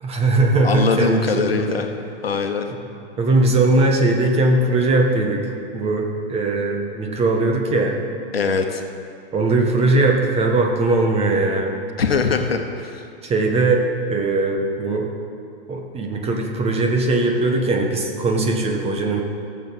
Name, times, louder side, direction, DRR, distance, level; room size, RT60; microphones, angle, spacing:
voice 1, 0.0-1.5 2.7-2.8 3.2-5.4 5.7-8.0 9.3-11.7 13.2-15.1 15.7-19.2, right 2 dB, 20° right, 2 dB, 1.5 m, -19 dB
voice 2, 0.6-1.9 2.2-2.7 8.3-8.8 12.0-13.0, left 5 dB, 80° left, 5 dB, 1.2 m, -22 dB
17.5 x 6.9 x 4.2 m, 2.4 s
hypercardioid pair, 110°, 29 cm